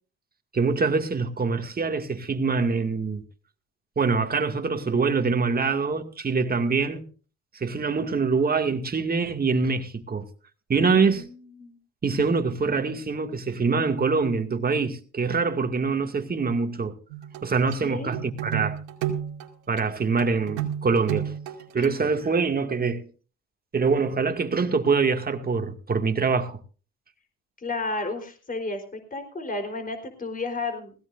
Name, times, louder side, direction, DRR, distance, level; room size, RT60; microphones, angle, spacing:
voice 1, 0.5-3.2 4.0-7.0 7.5-10.3 10.7-11.2 12.0-17.0 17.4-18.8 19.7-21.3 21.7-23.1 23.7-26.6, right 4 dB, 30° right, 2.2 m, -24 dB
voice 2, 10.9-11.3 11.6-11.8 17.8-18.1 21.8-21.9 27.6-30.9, left 3 dB, 30° left, 4.0 m, -32 dB
sound 1, 17.1-17.5 17.7-17.8 18.1-19.5 19.8-19.9 20.2-21.9, right 10 dB, 85° right, 2.6 m, -31 dB
19.5 x 16.5 x 2.6 m
supercardioid pair, 70°, 30 cm